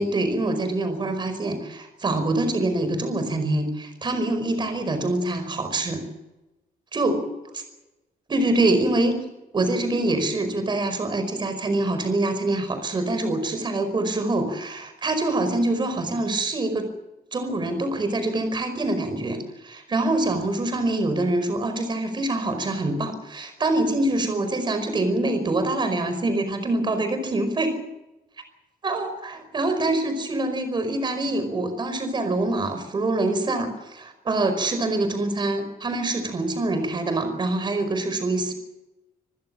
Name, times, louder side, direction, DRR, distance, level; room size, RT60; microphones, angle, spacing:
voice 1, 0.0-6.0 6.9-7.2 8.3-9.2 9.5-16.9 17.3-27.8 28.8-38.5, right 2 dB, 30° right, 8 dB, 5.0 m, -25 dB
27.0 x 15.5 x 7.5 m, 1.0 s
wide cardioid pair, 175°, 16 cm